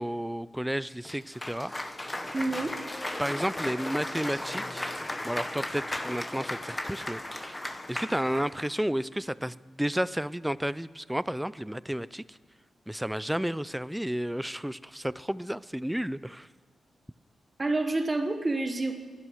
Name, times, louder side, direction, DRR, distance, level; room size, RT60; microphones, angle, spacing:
voice 1, 0.0-1.7 3.2-5.0 5.2-7.2 7.9-12.4 12.9-16.5, equal, 5° right, 18 dB, 0.4 m, -32 dB
Cheering / Applause, 1.0-8.7, left 1 dB, 15° left, 0.9 m, -36 dB
voice 2, 2.3-2.7 17.6-18.9, right 2 dB, 25° right, 7 dB, 1.1 m, -28 dB
16.5 x 11.5 x 6.3 m, 1.5 s
cardioid pair, 100°, 0 cm